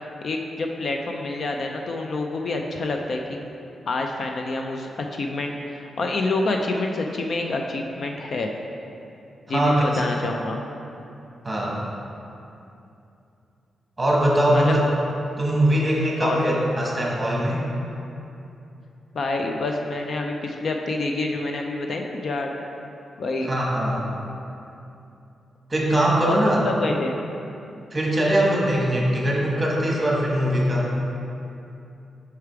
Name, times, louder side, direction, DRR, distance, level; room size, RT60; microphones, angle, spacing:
voice 1, 0.2-3.4 3.9-8.5 9.5-10.6 14.5-14.8 16.2-16.4 19.1-22.5 23.2-23.5 26.3-27.1, left 2 dB, 50° left, 3 dB, 0.4 m, -27 dB
voice 2, 9.5-9.8 11.4-11.8 14.0-14.9 15.4-17.6 23.5-24.1 25.7-26.6 27.9-30.9, right 1 dB, 15° right, -4 dB, 1.2 m, -21 dB
5.7 x 4.9 x 4.6 m, 2.7 s
wide cardioid pair, 140°, 0 cm